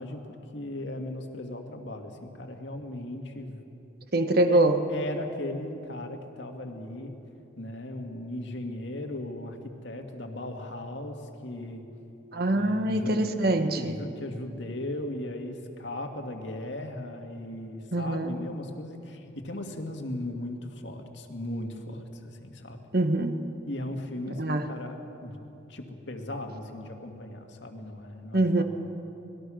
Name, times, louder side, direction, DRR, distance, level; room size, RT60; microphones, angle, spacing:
voice 1, 0.0-3.6 4.5-4.6 4.9-7.2 7.6-11.8 12.5-13.3 13.8-22.8 23.7-25.4 25.7-28.6, left 1 dB, 65° left, 4 dB, 2.2 m, -37 dB
voice 2, 4.1-4.8 12.3-14.0 17.9-18.3 22.9-23.4 24.4-24.7 28.3-28.6, right 2 dB, 50° right, 7 dB, 1.3 m, -24 dB
25.5 x 20.0 x 6.4 m, 2.8 s
head